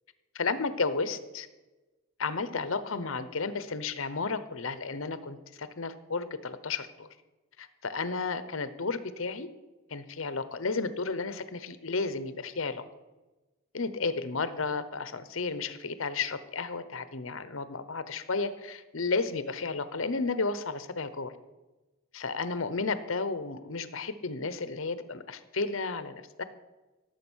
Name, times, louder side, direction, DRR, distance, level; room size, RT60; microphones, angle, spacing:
voice 1, 0.3-1.5 2.2-7.1 7.6-9.5 9.9-12.8 13.7-21.3 22.1-26.4, left 4 dB, 65° left, 13 dB, 0.9 m, -33 dB
17.0 x 7.9 x 6.3 m, 1.1 s
head